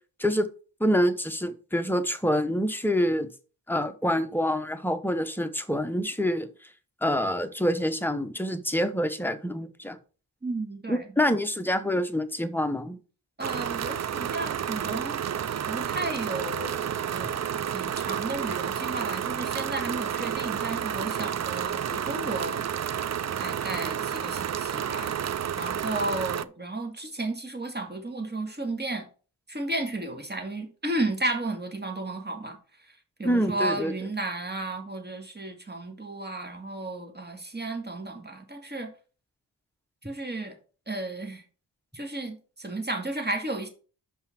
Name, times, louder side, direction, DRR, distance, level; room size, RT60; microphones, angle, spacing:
voice 1, 0.8-3.3 3.7-6.5 7.0-10.0 10.9-13.0 33.2-33.9, equal, 5° left, 0.9 m, -26 dB
voice 2, 10.4-11.1 13.4-15.2 15.7-16.8 17.1-22.6 23.4-25.2 25.6-29.1 29.5-32.6 33.2-38.9 40.0-40.6 40.9-41.4 41.9-43.7, right 2 dB, 20° right, 2.0 m, -33 dB
sound 1, 13.4-26.4, right 9 dB, 40° right, 0.4 m, -30 dB
5.8 x 5.6 x 5.8 m
wide cardioid pair, 105°, 44 cm